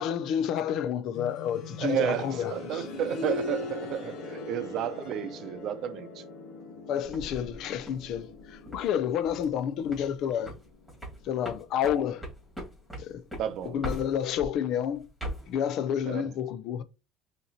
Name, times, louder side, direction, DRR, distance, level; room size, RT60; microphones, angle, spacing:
voice 1, 0.0-2.8 6.7-10.5 11.2-12.2 12.9-13.2 13.6-15.1 15.5-16.8, left 9 dB, 60° left, 0.5 m, -30 dB
sound 1, 1.1-11.9 12.2-12.3 13.2-13.3, left 3 dB, 80° left, 1.3 m, -41 dB
voice 2, 1.8-6.2 13.4-13.8 16.1-16.3, right 10 dB, 55° right, 0.6 m, -32 dB
sound 2, 7.0-8.9 9.3-9.6 9.8-10.2 10.5-14.6 15.0-15.5, equal, ahead, 2.2 m, -39 dB
5.6 x 2.9 x 2.8 m
cardioid pair, 130°, 0 cm